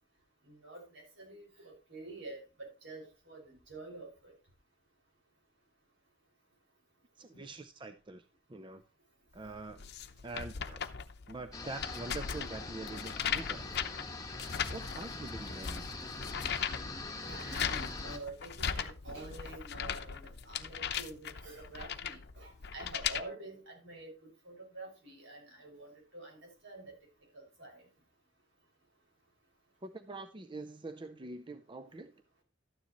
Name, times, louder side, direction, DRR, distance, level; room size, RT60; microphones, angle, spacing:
voice 1, 0.5-4.3 7.3-7.4 17.2-24.1 24.4-26.9 27.3-27.8, right 2 dB, 70° right, 1 dB, 6.0 m, -48 dB
voice 2, 7.2-8.8 9.3-9.8 10.2-10.8 11.3-13.7 14.3-15.9 29.8-32.1, right 2 dB, 25° right, 8 dB, 0.5 m, -45 dB
sound 1, 9.5-23.2, left 7 dB, 55° left, 0.7 m, -38 dB
sound 2, 11.5-18.2, left 3 dB, 20° left, 1.2 m, -43 dB
12.5 x 9.8 x 3.1 m, 0.32 s
head